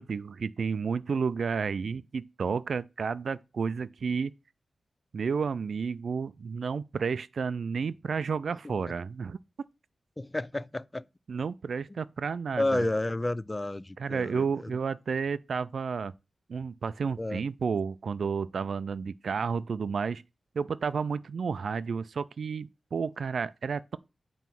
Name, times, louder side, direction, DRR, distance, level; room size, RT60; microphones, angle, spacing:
voice 1, 0.0-4.3 5.1-9.4 11.3-12.9 14.0-16.1 16.5-20.2 20.6-24.0, right 5 dB, 70° right, 0.4 m, -31 dB
voice 2, 10.2-11.0 11.9-12.0 12.5-14.7 17.2-17.4, left 2 dB, 20° left, 0.3 m, -31 dB
9.1 x 3.1 x 6.0 m
wide cardioid pair, 130°, 0 cm